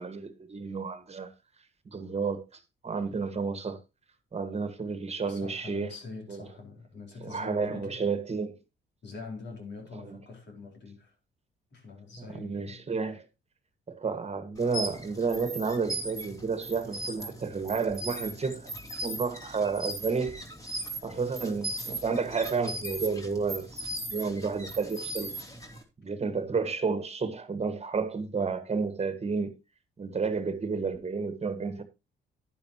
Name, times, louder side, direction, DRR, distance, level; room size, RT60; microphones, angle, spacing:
voice 1, 0.0-1.3 1.9-2.4 2.8-3.8 4.3-5.9 6.3-6.4 7.2-8.6 10.1-10.2 12.2-13.2 13.9-18.7 19.0-20.4 21.0-23.8 24.1-25.3 26.0-29.6 30.0-31.8, right 5 dB, 30° right, 1.7 m, -31 dB
voice 2, 5.2-8.0 9.0-11.1 11.7-12.8 20.9-21.1, left 4 dB, 60° left, 4.0 m, -44 dB
sound 1, 14.5-25.8, right 1 dB, 15° left, 3.1 m, -38 dB
10.5 x 10.5 x 3.0 m
cardioid pair, 90°, 20 cm